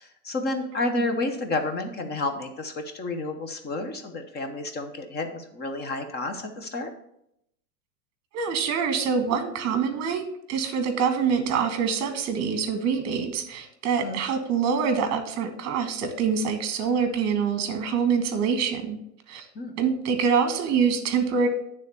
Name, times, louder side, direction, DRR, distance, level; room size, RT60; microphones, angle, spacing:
voice 1, 0.0-6.9 14.0-14.2 19.5-19.8, left 2 dB, 20° left, 7 dB, 0.8 m, -30 dB
voice 2, 8.3-19.0 19.3-19.4 19.8-21.5, right 6 dB, 30° right, 8 dB, 1.4 m, -25 dB
9.2 x 3.6 x 6.6 m, 0.77 s
supercardioid pair, 140°, 49 cm